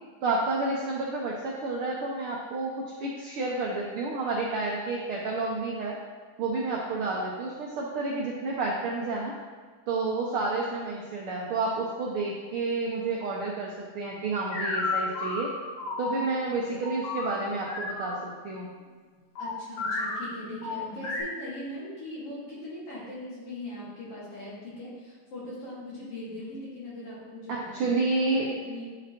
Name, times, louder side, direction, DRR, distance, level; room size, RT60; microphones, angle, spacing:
voice 1, 0.2-2.7 3.0-6.0 6.4-9.3 9.9-15.5 16.0-18.2 18.4-18.7 27.5-28.5, right 3 dB, 85° right, -3 dB, 1.2 m, -30 dB
sound 1, 14.5-18.1 19.4-20.2 20.6-21.2, left 3 dB, 70° left, 2.9 m, -32 dB
voice 2, 19.4-28.8, left 1 dB, 50° left, -9 dB, 2.9 m, -40 dB
9.8 x 4.9 x 3.0 m, 1.5 s
omnidirectional pair, 3.4 m